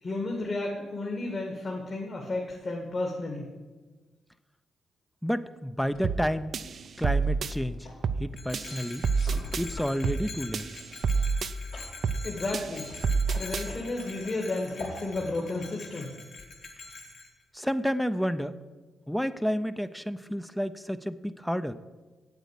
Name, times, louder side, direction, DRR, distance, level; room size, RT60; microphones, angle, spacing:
voice 1, 0.0-3.5 12.2-12.9 13.3-16.1, left 2 dB, 45° left, 0 dB, 2.0 m, -32 dB
voice 2, 5.2-6.5 7.0-7.9 8.2-9.0 9.6-10.7 17.5-18.6 19.1-21.7, equal, 5° left, 11 dB, 0.5 m, -30 dB
sound 1, 5.9-17.0, left 2 dB, 90° left, 3.8 m, -48 dB
sound 2, 6.0-6.3 6.5-7.5 8.0-8.3 8.5-9.7 10.0-10.3 10.5-11.5 12.0-12.3 12.5-13.7, right 5 dB, 60° right, 0.5 m, -28 dB
Bell, 8.3-17.3, left 3 dB, 65° left, 2.0 m, -45 dB
8.2 x 8.0 x 8.4 m, 1.3 s
supercardioid pair, 60°, 0 cm